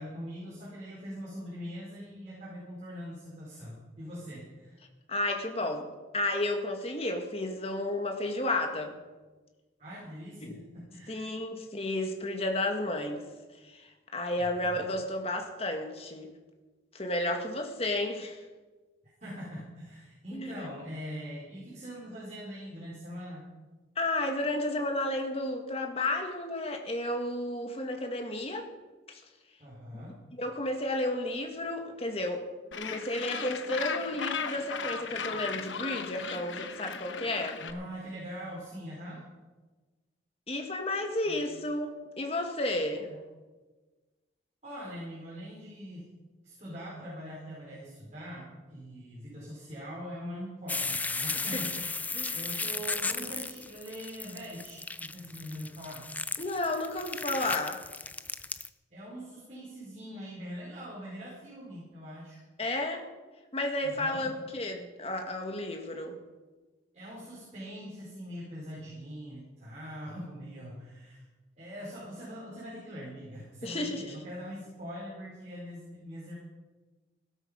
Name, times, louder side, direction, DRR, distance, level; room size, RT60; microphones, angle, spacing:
voice 1, 0.0-4.7 9.8-11.3 14.4-14.8 19.2-23.5 29.6-30.2 37.6-39.2 41.2-41.4 43.1-43.2 44.6-46.1 46.4-51.9 52.3-56.1 58.9-62.4 63.8-64.4 66.9-71.2 71.6-76.3, equal, 40° right, -8 dB, 5.0 m, -42 dB
voice 2, 5.1-5.9 6.1-9.0 10.4-10.6 11.1-13.2 13.6-16.3 16.9-18.4 20.3-20.7 24.0-28.7 29.1-29.2 30.4-32.5 32.7-37.6 40.5-43.1 51.5-51.6 52.1-52.4 56.4-57.8 62.6-63.0 63.5-66.2 73.6-74.1, left 1 dB, 30° left, 4 dB, 1.8 m, -32 dB
Gull seagull, 32.7-37.7, left 6 dB, 85° left, 1.1 m, -37 dB
sound 1, 50.7-58.7, left 3 dB, 10° left, 0.4 m, -35 dB
17.0 x 12.5 x 5.2 m, 1.3 s
head